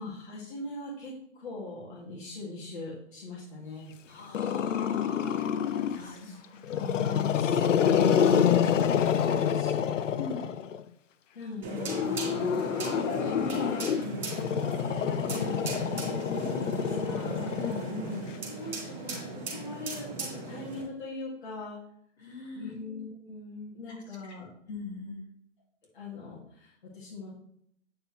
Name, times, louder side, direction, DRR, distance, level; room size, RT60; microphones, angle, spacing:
voice 1, 0.0-3.9 6.0-6.4 6.7-10.1 11.3-13.8 14.1-17.8 18.5-21.8 22.5-24.5 25.9-27.3, left 2 dB, 45° left, -6 dB, 2.0 m, -41 dB
voice 2, 4.1-5.4 5.9-6.9 10.2-10.5 14.0-14.3 17.6-18.3 22.2-22.8 24.7-25.3, left 4 dB, 60° left, -1 dB, 2.6 m, -40 dB
Growling, 4.3-6.1 6.6-10.8 11.8-18.3, left 8 dB, 80° left, 0.6 m, -27 dB
sound 1, 11.6-20.8, right 3 dB, 50° right, 3.1 m, -37 dB
8.7 x 5.6 x 3.0 m, 0.68 s
hypercardioid pair, 180°, 37 cm